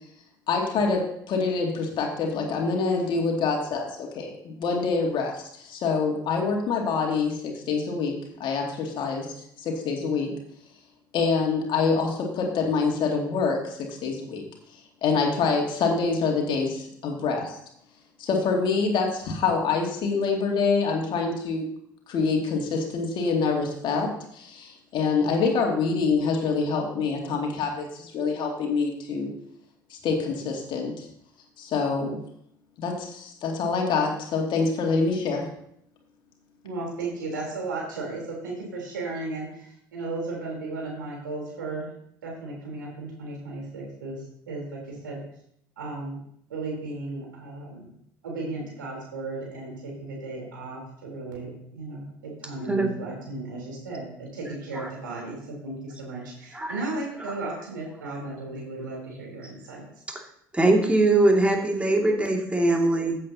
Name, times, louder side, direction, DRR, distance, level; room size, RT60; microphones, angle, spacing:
voice 1, 0.5-10.3 11.1-14.4 15.0-17.6 18.2-21.7 22.1-29.3 29.9-31.1 31.6-32.2 32.8-35.5, left 4 dB, 50° left, 1 dB, 2.5 m, -26 dB
voice 2, 36.6-41.9 42.2-45.2 45.8-46.2 46.5-47.9 48.2-59.8, right 2 dB, 80° right, -2 dB, 3.8 m, -35 dB
voice 3, 60.5-63.2, right 2 dB, 10° right, 1 dB, 2.5 m, -21 dB
15.0 x 7.9 x 2.9 m, 0.70 s
figure-of-eight pair, 60°, 11 cm